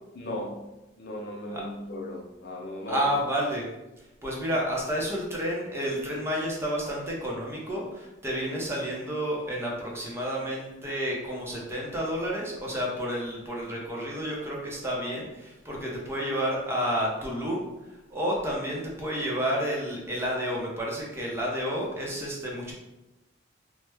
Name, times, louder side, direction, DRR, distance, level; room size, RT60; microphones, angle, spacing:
voice 1, 0.1-0.6 1.0-3.1, left 1 dB, 55° left, -2 dB, 0.7 m, -36 dB
voice 2, 2.9-3.7 4.0-17.7 18.1-22.7, equal, 15° right, -3 dB, 0.7 m, -30 dB
3.1 x 2.1 x 3.3 m, 0.98 s
head